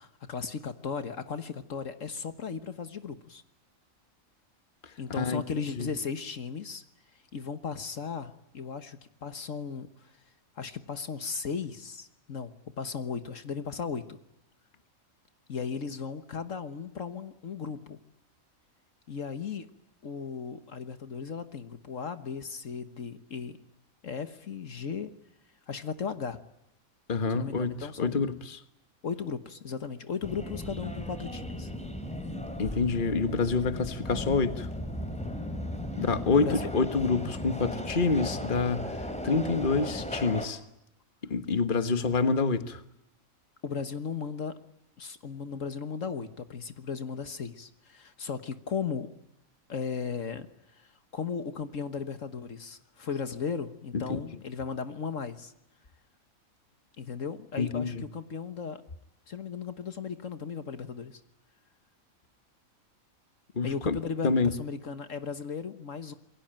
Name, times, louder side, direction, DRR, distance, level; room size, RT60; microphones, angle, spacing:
voice 1, 0.0-3.4 5.0-6.8 7.1-10.2 10.6-14.2 15.5-18.0 19.1-19.7 20.0-23.6 24.0-25.1 25.7-26.4 27.3-28.2 29.0-31.7 36.3-36.7 43.6-44.6 45.0-49.1 49.7-50.5 50.7-55.5 57.0-58.8 59.3-61.2 63.6-66.1, left 6 dB, 65° left, 1.7 m, -36 dB
voice 2, 4.8-5.4 5.8-5.9 27.1-28.6 32.6-34.7 36.0-40.6 41.3-42.8 53.9-54.2 57.6-58.0 63.5-64.0 64.2-64.5, left 4 dB, 40° left, 1.6 m, -27 dB
Subway metro underground, 30.2-40.5, left 1 dB, 5° left, 3.3 m, -36 dB
27.5 x 22.5 x 8.9 m
omnidirectional pair, 1.5 m